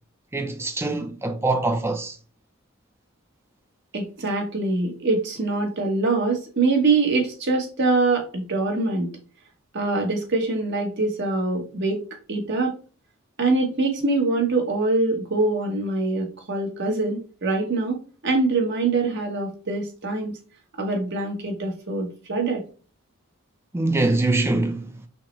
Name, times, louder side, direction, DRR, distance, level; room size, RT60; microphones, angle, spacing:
voice 1, 0.3-2.2 23.7-25.0, right 2 dB, 10° right, 0.5 m, -23 dB
voice 2, 3.9-9.1 9.7-12.0 12.3-12.7 13.4-20.4 20.8-22.6, right 3 dB, 55° right, 1.1 m, -24 dB
5.5 x 2.1 x 3.1 m
head